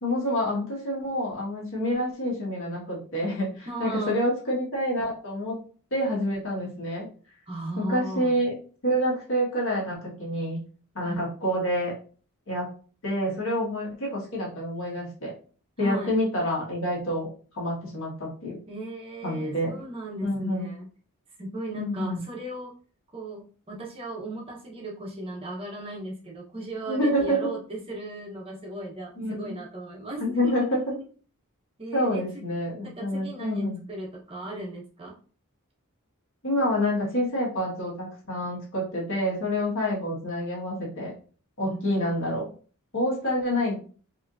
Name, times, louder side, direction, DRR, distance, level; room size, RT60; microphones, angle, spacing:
voice 1, 0.0-5.6 5.9-7.1 7.8-8.5 8.8-10.6 11.0-11.9 12.5-12.7 13.0-15.3 15.8-17.3 17.5-18.6 19.2-19.8 20.2-20.7 21.8-22.2 26.9-27.5 29.2-29.5 30.2-30.8 31.9-33.8 36.4-41.1 41.6-42.5 42.9-43.7, equal, 60° left, -4 dB, 1.8 m, -27 dB
voice 2, 3.7-4.2 7.5-8.4 11.0-11.3 15.8-16.2 18.7-20.9 21.4-22.7 23.1-31.0 31.8-32.2 32.8-35.2 41.6-41.8, right 1 dB, 25° right, -2 dB, 1.1 m, -36 dB
4.8 x 3.0 x 2.6 m, 0.40 s
head